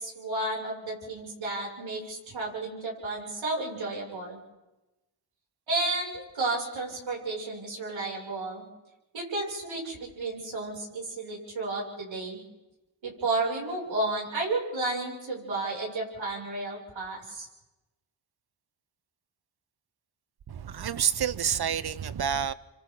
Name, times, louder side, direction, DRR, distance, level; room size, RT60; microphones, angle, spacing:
voice 1, 0.0-4.4 5.7-8.6 9.1-12.4 13.0-17.5, right 2 dB, 65° right, 7.3 m, -32 dB
voice 2, 20.5-22.5, right 8 dB, 50° right, 1.0 m, -28 dB
28.0 x 25.5 x 4.0 m
cardioid pair, 60°, 49 cm